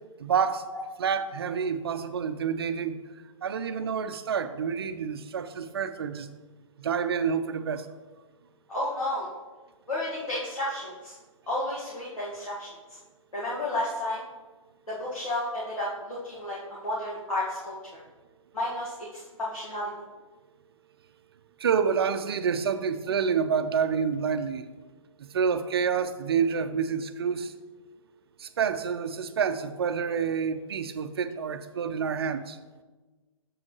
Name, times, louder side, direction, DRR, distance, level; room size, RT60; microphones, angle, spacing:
voice 1, 0.2-0.6 1.0-3.0 3.4-6.3 6.8-7.9 21.6-24.7 25.3-27.5 28.4-32.6, right 6 dB, 45° right, 11 dB, 0.5 m, -28 dB
voice 2, 8.7-9.3 9.9-11.2 11.5-12.7 13.3-14.2 14.9-17.7 18.5-19.9, left 1 dB, 75° left, -8 dB, 1.8 m, -32 dB
7.4 x 7.2 x 3.1 m, 1.3 s
figure-of-eight pair, 130°, 18 cm